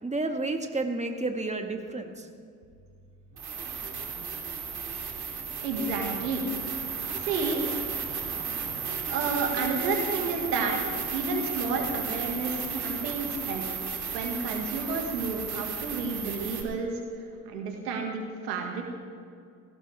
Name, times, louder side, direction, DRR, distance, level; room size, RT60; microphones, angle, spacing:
voice 1, 0.0-2.3, right 2 dB, 15° right, 5 dB, 1.8 m, -31 dB
sound 1, 2.6-2.7 3.3-16.6, right 6 dB, 55° right, 2.7 m, -34 dB
voice 2, 5.6-6.4 7.2-7.6 9.1-10.8 11.1-13.7 14.1-17.0 17.5-18.9, right 4 dB, 85° right, 2 dB, 1.9 m, -31 dB
19.0 x 16.5 x 3.5 m, 2.4 s
hypercardioid pair, 50°, 47 cm